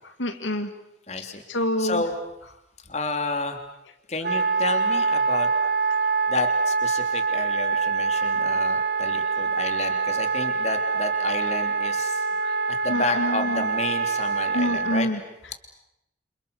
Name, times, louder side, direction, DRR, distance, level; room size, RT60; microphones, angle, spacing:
voice 1, 0.0-0.7 1.5-2.0 12.4-12.6 12.9-13.7 14.5-15.2, left 1 dB, 85° left, 7 dB, 2.3 m, -27 dB
voice 2, 1.1-2.1 2.8-3.6 4.1-5.5 6.3-12.2 12.7-15.1, left 2 dB, 35° left, 6 dB, 3.2 m, -31 dB
Wind instrument woodwind instrument, 4.2-15.0, right 4 dB, 55° right, 1.4 m, -25 dB
29.5 x 27.0 x 7.0 m, 0.85 s
head